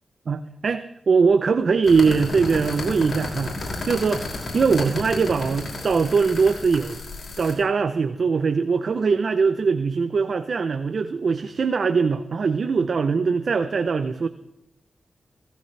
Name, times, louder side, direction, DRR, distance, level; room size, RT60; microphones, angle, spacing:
voice 1, 0.3-3.5 3.8-4.3 4.5-7.0 7.4-14.3, right 5 dB, 65° right, 10 dB, 0.7 m, -21 dB
sound 1, 1.8-7.5, left 2 dB, 65° left, 5.9 m, -32 dB
17.5 x 15.5 x 3.3 m, 0.87 s
cardioid pair, 70°, 0 cm